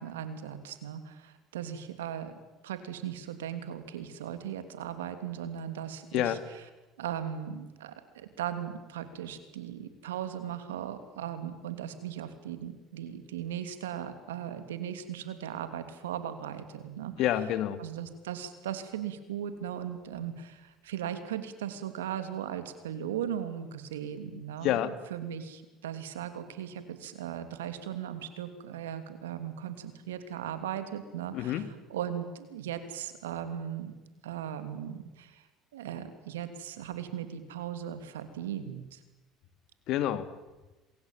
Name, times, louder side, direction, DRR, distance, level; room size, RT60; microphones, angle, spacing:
voice 1, 0.0-2.3 2.6-6.4 7.0-17.1 17.8-33.9 34.2-35.5 35.7-39.0, right 9 dB, 90° right, 10 dB, 3.0 m, -38 dB
voice 2, 17.2-17.8 24.6-24.9 31.3-31.7 39.9-40.3, left 12 dB, 65° left, 13 dB, 2.3 m, -28 dB
27.0 x 23.0 x 9.1 m, 1.1 s
hypercardioid pair, 75°, 0 cm